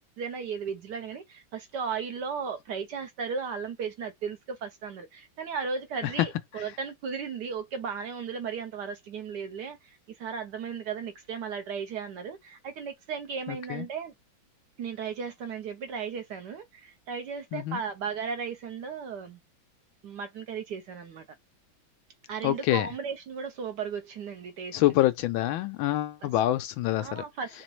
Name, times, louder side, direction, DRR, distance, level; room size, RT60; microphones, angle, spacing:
voice 1, 0.2-9.8 10.2-14.1 14.8-19.4 20.0-21.2 22.3-24.8 26.2-26.3 27.0-27.5, right 6 dB, 65° right, 1.2 m, -35 dB
voice 2, 13.5-13.9 17.5-17.8 22.4-22.9 24.7-27.2, left 14 dB, 80° left, 1.4 m, -26 dB
4.8 x 3.0 x 3.1 m
omnidirectional pair, 2.2 m